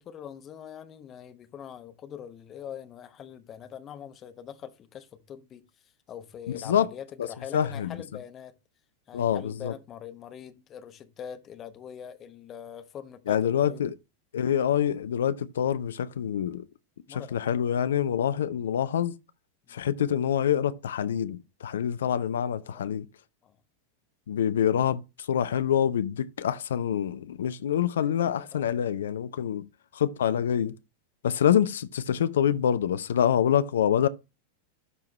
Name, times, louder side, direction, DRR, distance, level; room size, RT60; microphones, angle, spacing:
voice 1, 0.0-8.5 9.1-13.8 17.1-17.3 19.7-19.8 22.6-22.9 23.4-23.6 28.2-28.8 29.2-29.4 31.3-31.4, left 9 dB, 30° left, 1.0 m, -43 dB
voice 2, 7.5-8.0 9.1-9.7 13.3-13.9 14.3-16.6 17.1-19.1 19.7-23.1 24.3-29.7 29.9-30.7 31.2-34.1, left 9 dB, 65° left, 0.6 m, -26 dB
12.0 x 4.7 x 3.0 m
figure-of-eight pair, 90°, 0 cm